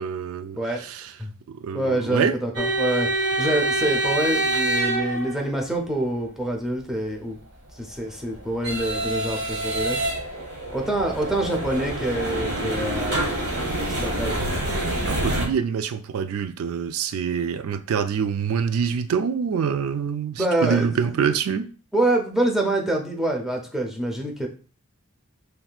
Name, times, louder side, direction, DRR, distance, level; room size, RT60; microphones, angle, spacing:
voice 1, 0.0-1.1 1.5-2.3 15.1-21.7, right 7 dB, 75° right, 0.3 m, -25 dB
voice 2, 1.7-7.4 7.8-10.0 10.7-14.3 20.4-21.0 21.9-24.5, right 1 dB, ahead, 0.7 m, -26 dB
sound 1, 2.5-5.7 7.8-15.5, right 1 dB, 50° right, 1.3 m, -26 dB
5.6 x 3.3 x 2.4 m
head